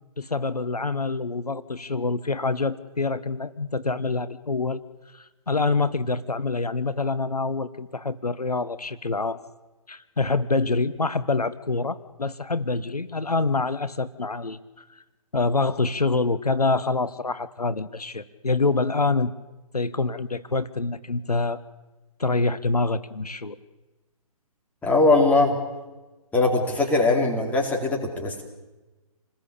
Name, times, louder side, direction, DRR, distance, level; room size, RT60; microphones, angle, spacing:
voice 1, 0.2-4.8 5.1-9.4 9.9-14.6 14.9-15.0 15.3-19.3 19.7-21.6 22.2-23.6, left 3 dB, 90° left, 14 dB, 1.3 m, -26 dB
voice 2, 24.8-25.6 26.3-28.4, left 2 dB, 10° left, -1 dB, 4.2 m, -21 dB
28.5 x 20.0 x 8.5 m, 1.1 s
figure-of-eight pair, 140°, 19 cm